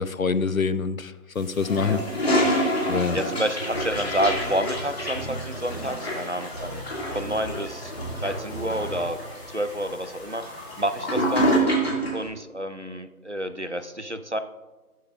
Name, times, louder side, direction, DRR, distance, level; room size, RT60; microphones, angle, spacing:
voice 1, 0.0-2.0 2.9-3.2, left 5 dB, 60° left, 15 dB, 0.6 m, -25 dB
sound 1, 1.3-11.6, equal, 5° left, 2.0 m, -51 dB
Toilet flush, 1.6-12.2, equal, 40° left, 2.2 m, -28 dB
voice 2, 3.1-6.8 7.1-9.2 9.5-10.5 10.8-11.5 12.1-14.4, right 1 dB, 50° right, 10 dB, 0.4 m, -29 dB
sound 2, 3.7-9.3, equal, 20° left, 2.8 m, -36 dB
18.5 x 7.0 x 2.4 m, 1.2 s
figure-of-eight pair, 170°, 47 cm